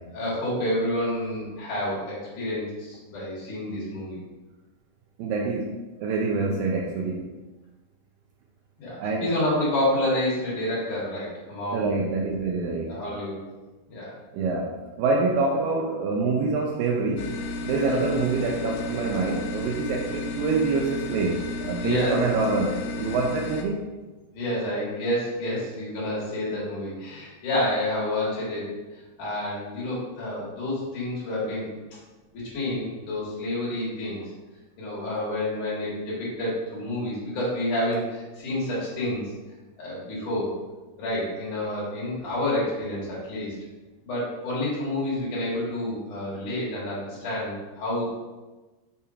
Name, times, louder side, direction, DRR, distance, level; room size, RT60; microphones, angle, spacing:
voice 1, 0.1-4.2 8.8-11.9 12.9-13.4 13.9-14.1 17.9-18.1 21.8-22.3 24.3-28.7 29.2-31.7 32.3-34.2 34.8-39.2 39.8-40.5 41.0-43.5 44.0-48.1, left 1 dB, 60° left, -7 dB, 3.0 m, -29 dB
voice 2, 5.2-5.7 6.0-7.3 9.0-9.3 11.7-12.9 14.3-14.7 15.0-17.3 17.7-22.7 23.0-23.8, right 3 dB, 80° right, 0 dB, 2.1 m, -26 dB
sound 1, 17.2-23.6, left 2 dB, 80° left, 2.5 m, -33 dB
6.9 x 2.9 x 4.7 m, 1.2 s
omnidirectional pair, 4.5 m